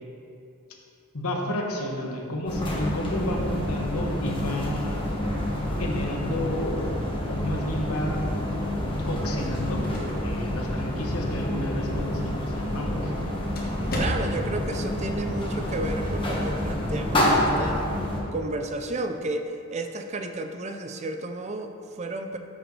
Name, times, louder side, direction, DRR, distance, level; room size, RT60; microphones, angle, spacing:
voice 1, 1.1-5.0 5.8-8.3 9.0-9.8 10.2-13.1, left 1 dB, 75° left, 1 dB, 1.2 m, -31 dB
sound 1, 2.5-18.2, left 1 dB, 20° left, 1.3 m, -28 dB
sound 2, 9.4-14.6, equal, 40° left, 1.3 m, -37 dB
voice 2, 13.9-17.9 18.3-22.4, right 2 dB, 30° right, 6 dB, 0.4 m, -32 dB
13.5 x 6.0 x 3.2 m, 2.6 s
head